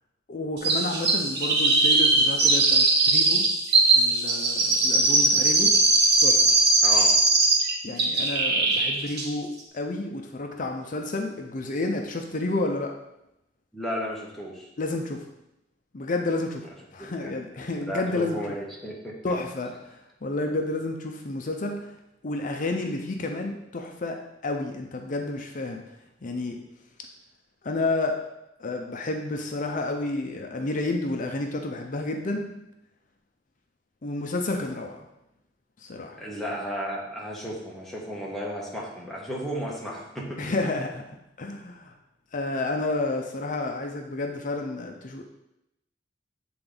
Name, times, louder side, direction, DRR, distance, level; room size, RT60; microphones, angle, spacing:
voice 1, 0.3-3.4 4.0-5.7 6.2-6.5 7.8-9.5 9.7-12.9 14.8-15.2 15.9-16.7 16.9-18.6 19.2-21.9 22.2-24.2 24.4-25.8 26.2-26.6 27.6-28.1 28.6-32.5 34.0-35.1 35.8-36.2 40.4-41.9 42.3-45.2, left 2 dB, 45° left, 3 dB, 0.6 m, -30 dB
Chirp tweet, 0.6-7.7 8.0-8.9 9.2-9.3, right 3 dB, 60° right, 1.3 m, -20 dB
voice 2, 13.7-14.7 17.0-17.3 17.8-19.4 36.2-40.4, equal, ahead, -4 dB, 1.3 m, -34 dB
7.6 x 3.9 x 3.8 m, 0.86 s
head